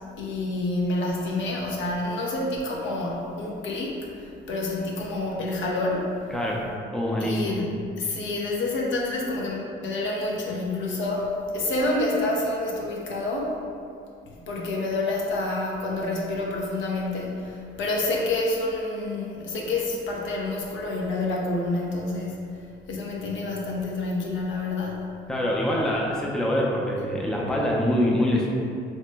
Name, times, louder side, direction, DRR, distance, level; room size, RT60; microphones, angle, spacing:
voice 1, 0.2-6.2 7.2-7.7 8.0-13.6 14.5-22.4 22.9-25.0, left 2 dB, 70° left, -2 dB, 0.6 m, -28 dB
voice 2, 6.3-6.6 6.9-7.6 25.3-28.5, left 1 dB, 5° left, -3 dB, 0.4 m, -24 dB
2.9 x 2.1 x 3.3 m, 2.4 s
cardioid pair, 90°, 20 cm